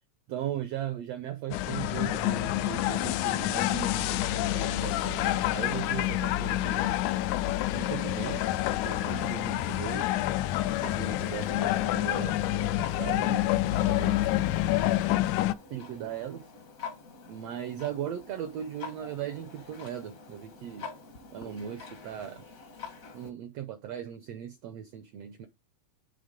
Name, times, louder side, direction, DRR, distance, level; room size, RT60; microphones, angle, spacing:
voice 1, 0.3-7.0 7.7-8.5 8.8-10.1 10.8-13.4 13.7-14.3 15.7-16.4 17.3-20.9 21.3-22.4 23.1-25.5, right 10 dB, 90° right, 1.4 m, -38 dB
sound 1, 1.5-15.5, left 14 dB, 85° left, 1.6 m, -28 dB
Clock, 4.8-23.3, left 5 dB, 60° left, 0.8 m, -48 dB
9.2 x 3.6 x 5.1 m
omnidirectional pair, 4.0 m